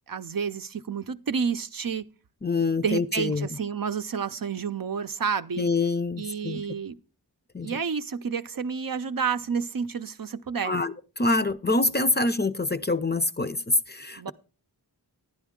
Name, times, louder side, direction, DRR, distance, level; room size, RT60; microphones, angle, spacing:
voice 1, 0.1-2.0 2.6-5.7 6.2-7.0 7.6-10.7 14.2-14.3, right 6 dB, 55° right, 0.6 m, -30 dB
voice 2, 2.4-3.5 5.6-6.6 7.5-7.8 10.6-14.3, left 3 dB, 25° left, 0.5 m, -26 dB
11.0 x 10.5 x 3.6 m
wide cardioid pair, 55°, 40 cm